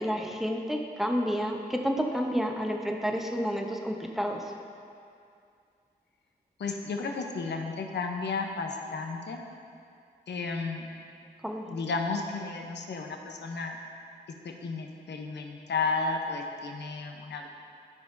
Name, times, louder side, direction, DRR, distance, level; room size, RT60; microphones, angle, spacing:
voice 1, 0.0-4.4 11.4-11.7, equal, ahead, 1 dB, 1.0 m, -30 dB
voice 2, 6.6-9.4 10.3-10.9 11.7-13.8 14.4-17.5, left 4 dB, 75° left, 2 dB, 0.8 m, -33 dB
13.5 x 4.9 x 2.7 m, 2.4 s
cardioid pair, 40°, 18 cm